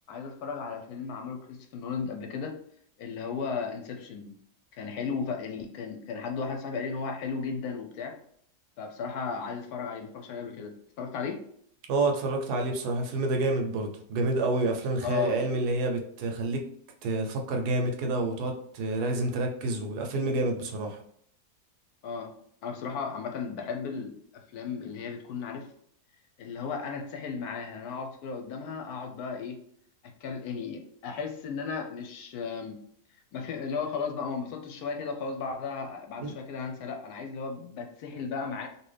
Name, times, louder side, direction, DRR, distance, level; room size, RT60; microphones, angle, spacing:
voice 1, 0.1-2.6 3.0-4.3 4.7-8.2 8.8-11.5 15.0-15.5 22.0-22.3 22.6-25.7 26.4-29.6 30.0-32.8 33.3-38.7, left 5 dB, 75° left, 4 dB, 1.0 m, -35 dB
voice 2, 11.9-16.6 17.0-21.0 36.2-36.3, right 2 dB, 75° right, 3 dB, 1.1 m, -28 dB
2.9 x 2.6 x 3.2 m, 0.66 s
omnidirectional pair, 1.8 m